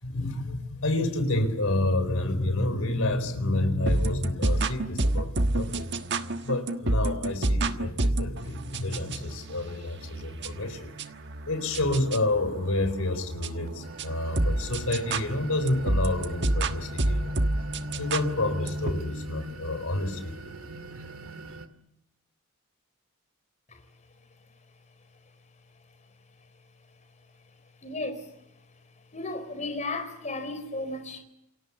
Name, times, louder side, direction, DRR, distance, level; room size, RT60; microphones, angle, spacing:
voice 1, 0.0-5.9 6.4-10.9 11.5-17.4 18.0-20.4, left 2 dB, 80° left, 4.0 m, -29 dB
sound 1, 3.9-18.9, right 2 dB, 55° right, 1.4 m, -29 dB
sound 2, 13.7-21.7, equal, 85° right, 2.1 m, -39 dB
voice 2, 27.8-28.3 29.1-31.2, left 2 dB, 35° left, 4.4 m, -34 dB
28.5 x 23.0 x 7.1 m
head